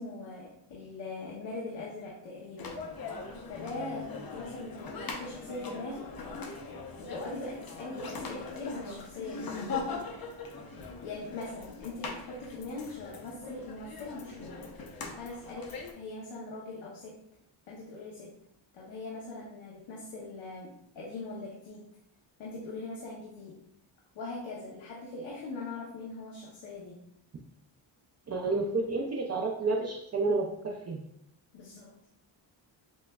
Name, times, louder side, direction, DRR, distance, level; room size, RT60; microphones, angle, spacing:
voice 1, 0.0-2.8 3.5-6.1 7.0-9.5 11.0-14.6 15.2-17.2 17.7-18.4 18.7-21.9 22.4-23.5 24.1-27.0 31.5-32.0, left 2 dB, 90° left, -4 dB, 0.8 m, -41 dB
sound 1, 2.6-15.9, left 4 dB, 50° left, 0.7 m, -41 dB
voice 2, 28.3-31.0, right 3 dB, 35° right, -1 dB, 0.4 m, -30 dB
6.2 x 2.2 x 2.2 m, 0.74 s
cardioid pair, 90°, 46 cm